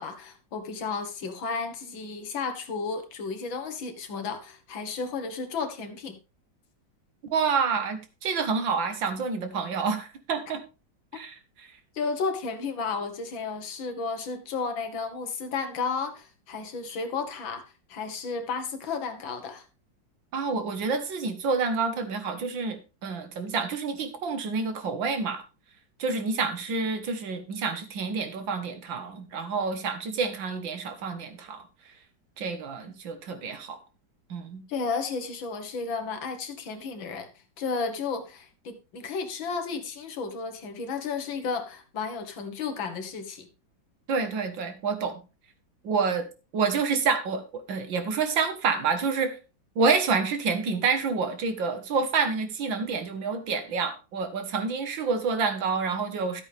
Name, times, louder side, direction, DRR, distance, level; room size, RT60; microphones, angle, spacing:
voice 1, 0.0-6.2 11.9-17.6 17.9-19.7 34.7-37.3 37.6-43.5, left 5 dB, 85° left, 2.2 m, -33 dB
voice 2, 7.3-10.6 11.1-11.4 20.3-25.4 26.0-31.6 32.4-33.8 34.3-34.6 44.1-45.2 45.8-46.3 46.5-49.4 49.8-56.4, right 5 dB, 75° right, 2.2 m, -28 dB
13.0 x 8.2 x 3.4 m
omnidirectional pair, 2.1 m